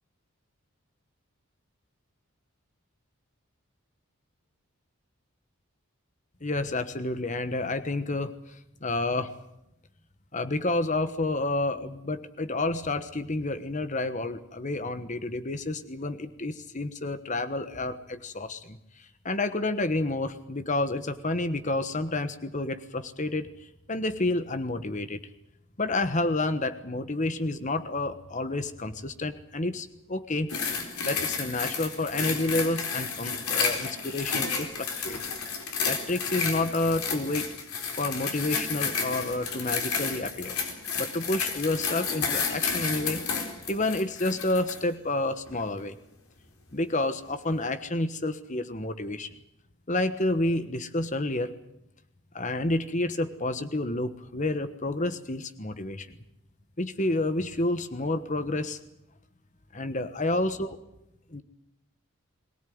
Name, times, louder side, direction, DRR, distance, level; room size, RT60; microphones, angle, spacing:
voice 1, 6.4-9.3 10.3-23.5 23.9-25.2 25.8-30.5 31.0-35.2 35.8-37.5 38.0-40.6 40.9-43.2 43.7-46.0 46.7-49.3 49.9-51.5 52.3-56.2 56.8-58.8 59.7-60.8 61.3-61.4, left 2 dB, 35° left, 11 dB, 1.2 m, -29 dB
sound 1, 30.5-44.8 45.5-45.6, left 5 dB, 85° left, 4.1 m, -31 dB
23.0 x 17.5 x 9.5 m, 0.86 s
head